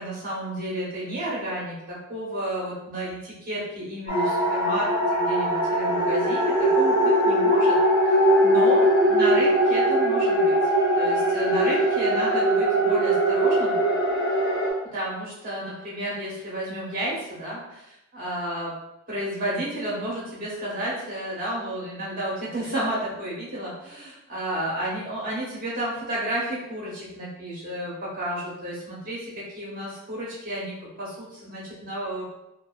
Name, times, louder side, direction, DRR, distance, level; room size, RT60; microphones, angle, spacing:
voice 1, 0.0-7.8 8.1-10.6 10.9-13.8 14.9-18.7 19.1-32.2, right 1 dB, 45° right, -7 dB, 1.0 m, -32 dB
sound 1, 4.1-14.7, right 1 dB, 55° left, 0.9 m, -21 dB
2.6 x 2.2 x 2.4 m, 0.85 s
head